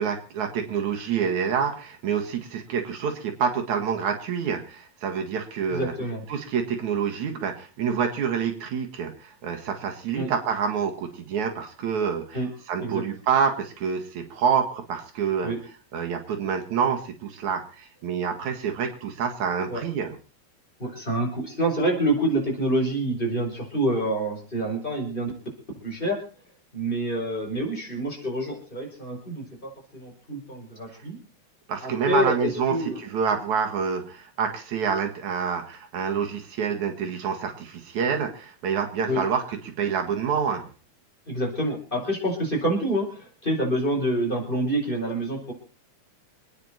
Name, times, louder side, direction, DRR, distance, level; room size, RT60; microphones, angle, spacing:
voice 1, 0.0-5.9 6.3-12.4 12.7-15.5 15.9-20.2 31.7-40.7, right 7 dB, 75° right, 4 dB, 3.2 m, -27 dB
voice 2, 5.7-6.2 10.1-10.3 12.3-12.5 12.8-13.0 15.4-15.6 19.7-19.8 20.8-25.3 25.8-26.2 26.7-31.2 31.8-33.0 39.1-39.2 41.3-45.5, right 1 dB, 15° left, -1 dB, 4.8 m, -27 dB
26.5 x 9.7 x 4.3 m, 0.36 s
omnidirectional pair, 3.4 m